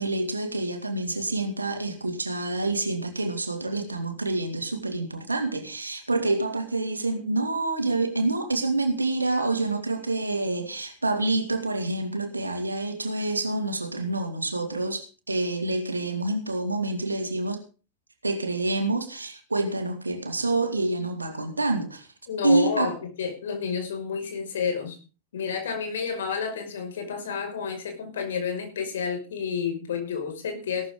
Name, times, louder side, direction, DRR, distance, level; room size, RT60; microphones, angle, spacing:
voice 1, 0.0-17.6 18.2-22.1 22.4-22.9, right 2 dB, 80° right, 2.6 m, -27 dB
voice 2, 22.3-25.0 25.3-30.9, left 6 dB, 65° left, 5.9 m, -30 dB
17.0 x 13.5 x 3.8 m
figure-of-eight pair, 85°, 0 cm